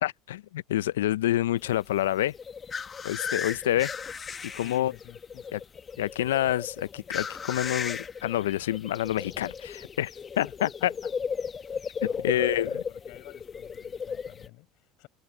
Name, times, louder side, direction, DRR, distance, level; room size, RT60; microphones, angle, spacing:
voice 1, 0.0-2.3 3.0-3.9 4.5-4.9 5.5-5.6 6.0-10.7 12.2-12.7, left 13 dB, 85° left, 0.6 m, -27 dB
sound 1, 1.6-14.5, left 6 dB, 30° left, 1.1 m, -36 dB
voice 2, 4.6-5.6 10.4-11.1 11.6-15.1, left 24 dB, 65° left, 6.1 m, -50 dB
hypercardioid pair, 75°, 0 cm